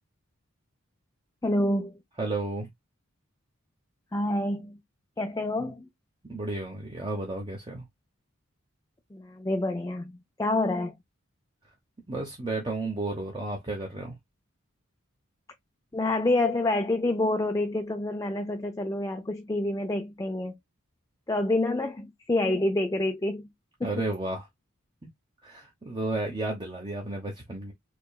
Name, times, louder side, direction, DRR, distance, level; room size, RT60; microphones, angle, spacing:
voice 1, 1.4-2.0 4.1-4.8 5.2-5.9 9.1-10.9 15.9-20.5 21.3-23.5 23.8-23.9, left 2 dB, 15° left, 0.4 m, -27 dB
voice 2, 2.2-2.7 6.2-7.8 12.1-14.1 23.8-24.5 25.4-27.7, right 2 dB, 20° right, 0.9 m, -32 dB
4.5 x 3.0 x 2.3 m
head